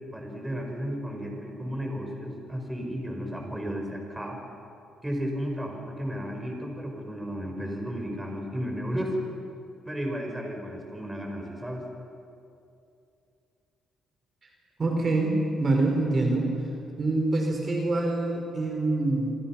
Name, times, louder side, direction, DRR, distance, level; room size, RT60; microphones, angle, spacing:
voice 1, 0.1-4.4 5.0-9.2 9.9-11.9, equal, 10° right, 2 dB, 5.6 m, -33 dB
voice 2, 14.8-16.5 17.0-19.4, right 2 dB, 40° right, 2 dB, 4.4 m, -25 dB
27.5 x 27.0 x 6.1 m, 2.7 s
cardioid pair, 90°, 0 cm